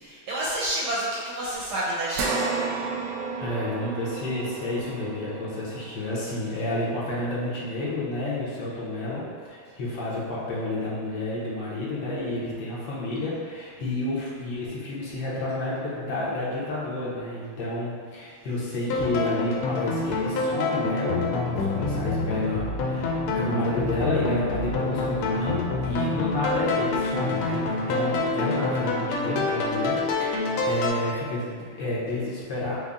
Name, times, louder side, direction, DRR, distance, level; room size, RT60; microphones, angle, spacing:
voice 1, 0.0-2.6, right 1 dB, 70° right, -6 dB, 1.0 m, -29 dB
sound 1, 2.1-10.8 11.2-11.3 12.8-12.9, right 4 dB, 90° right, 1.4 m, -35 dB
voice 2, 3.4-32.8, left 1 dB, 70° left, -7 dB, 1.6 m, -30 dB
sound 2, 18.9-30.9, left 3 dB, 90° left, 1.5 m, -27 dB
5.3 x 2.1 x 3.5 m, 2.1 s
omnidirectional pair, 2.3 m